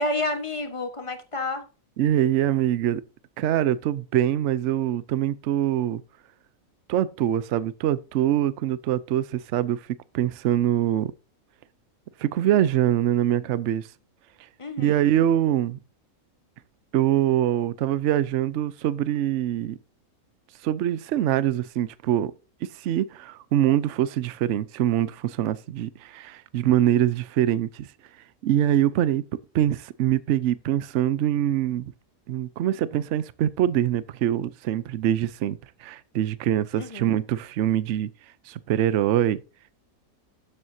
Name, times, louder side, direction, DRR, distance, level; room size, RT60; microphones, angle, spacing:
voice 1, 0.0-1.6 14.6-15.0 36.8-37.2, left 2 dB, 25° left, 1.2 m, -30 dB
voice 2, 2.0-3.0 3.4-6.0 6.9-9.8 10.1-11.1 12.2-13.9 14.8-15.8 16.9-19.8 20.6-22.3 22.8-27.9 28.4-29.2 29.5-31.9 32.3-38.1 38.5-39.4, right 11 dB, 65° right, 0.8 m, -24 dB
12.0 x 7.6 x 2.7 m
omnidirectional pair, 1.5 m